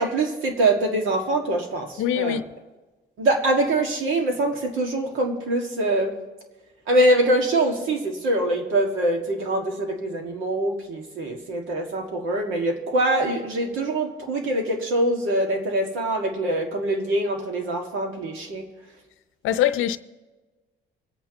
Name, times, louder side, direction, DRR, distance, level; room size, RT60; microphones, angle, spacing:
voice 1, 0.0-2.4 3.2-6.1 6.9-18.7, right 1 dB, 90° right, 2.0 m, -24 dB
voice 2, 2.0-2.4 19.4-20.0, left 10 dB, 85° left, 0.6 m, -22 dB
25.0 x 8.8 x 3.0 m
cardioid pair, 90°, 20 cm